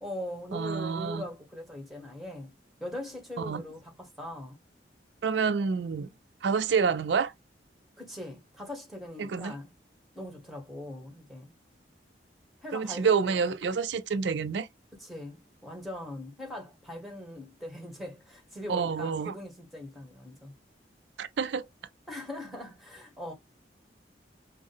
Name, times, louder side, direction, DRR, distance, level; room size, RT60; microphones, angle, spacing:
voice 1, 0.0-2.5 2.8-4.6 8.0-9.7 10.1-11.5 12.6-13.5 14.9-20.5 22.1-23.3, left 1 dB, ahead, 1.5 m, -41 dB
voice 2, 0.5-1.3 3.4-3.6 5.2-6.1 6.4-7.3 9.2-9.5 12.7-14.7 18.7-19.3 21.2-21.7, right 5 dB, 75° right, 0.4 m, -28 dB
5.3 x 2.1 x 3.4 m
head